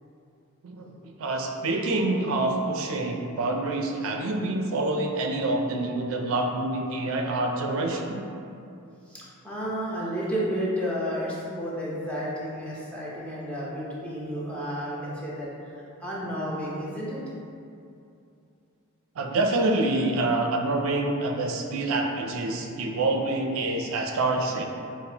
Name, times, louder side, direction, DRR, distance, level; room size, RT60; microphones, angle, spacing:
voice 1, 0.6-8.3 19.2-24.7, right 2 dB, 65° right, 3 dB, 0.4 m, -27 dB
voice 2, 9.1-17.2, equal, 5° left, -8 dB, 0.7 m, -32 dB
5.7 x 2.0 x 2.8 m, 2.6 s
head